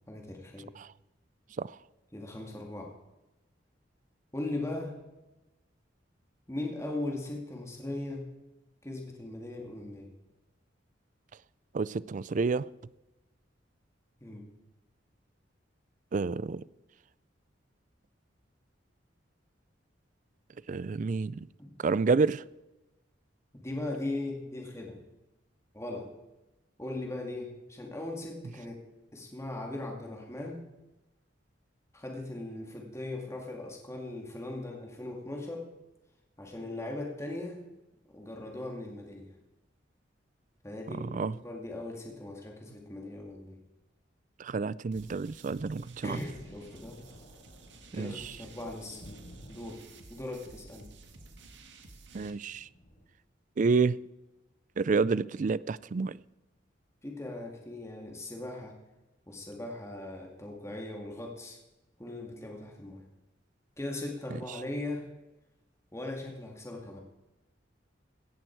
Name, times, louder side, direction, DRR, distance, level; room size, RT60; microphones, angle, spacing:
voice 1, 0.1-0.7 2.1-2.9 4.3-5.0 6.5-8.3 8.8-10.1 14.2-14.5 21.6-21.8 23.6-25.0 25.7-26.1 26.8-28.8 29.1-30.6 31.9-35.7 36.4-37.6 38.1-39.3 40.6-43.6 46.0-47.0 47.9-49.0 49.5-49.8 50.1-50.9 57.0-58.7 59.3-61.6 62.0-63.0 63.8-65.1 65.9-67.0, left 2 dB, 15° left, 2.2 m, -39 dB
voice 2, 11.7-12.7 16.1-16.6 20.7-21.4 21.8-22.4 41.0-41.3 44.4-46.2 47.9-48.1 52.1-52.7 53.6-54.0 54.8-56.2, right 4 dB, 40° right, 0.4 m, -29 dB
sound 1, 44.9-52.3, right 3 dB, 70° right, 1.9 m, -53 dB
Thunder, 46.1-53.1, equal, 40° left, 3.7 m, -53 dB
17.0 x 14.0 x 4.6 m
head